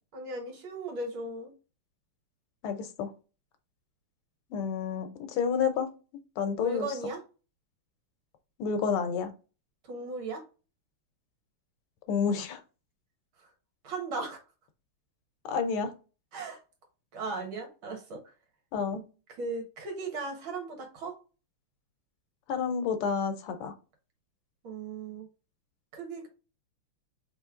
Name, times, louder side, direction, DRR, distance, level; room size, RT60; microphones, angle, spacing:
voice 1, 0.1-1.5 6.6-7.2 9.8-10.4 13.8-14.4 16.3-16.6 17.1-18.2 19.4-21.1 24.6-25.3 25.9-26.3, right 3 dB, 70° right, 3 dB, 2.2 m, -37 dB
voice 2, 2.6-3.1 4.5-5.9 6.4-6.9 8.6-9.3 12.1-12.6 15.4-15.9 18.7-19.0 22.5-23.7, left 6 dB, 85° left, 8 dB, 1.7 m, -29 dB
4.3 x 3.2 x 3.6 m, 0.33 s
omnidirectional pair, 2.4 m